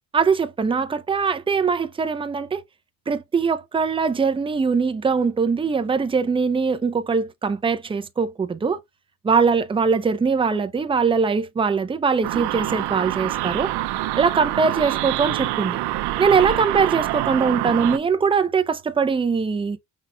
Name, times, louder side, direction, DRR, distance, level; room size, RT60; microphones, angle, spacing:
voice 1, 0.1-2.6 3.1-8.8 9.2-13.7 14.1-15.8 16.2-19.8, right 5 dB, 15° right, 0.6 m, -21 dB
sound 1, 12.2-18.0, right 15 dB, 80° right, 0.7 m, -26 dB
5.7 x 4.1 x 2.2 m
cardioid pair, 130°, 39 cm